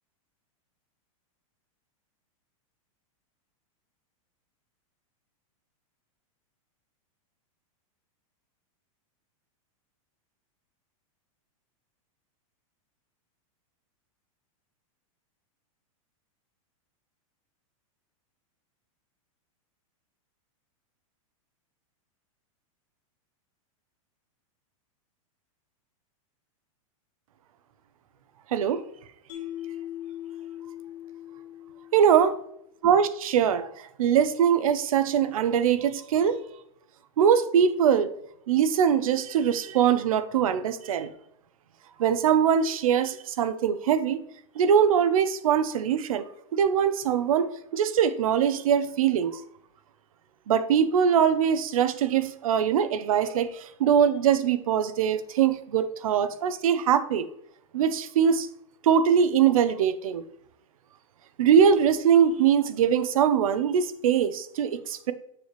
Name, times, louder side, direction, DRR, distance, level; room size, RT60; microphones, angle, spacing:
voice 1, 28.5-28.8 31.9-32.3 32.8-33.7 34.0-36.4 37.2-38.1 38.5-41.1 42.0-44.2 44.6-46.3 46.5-49.4 50.5-57.3 57.7-58.5 58.8-60.2 61.4-65.1, right 8 dB, 80° right, 0.7 m, -22 dB
Mallet percussion, 29.3-32.6, left 12 dB, 35° left, 1.2 m, -40 dB
6.9 x 6.7 x 3.1 m
supercardioid pair, 180°, 18 cm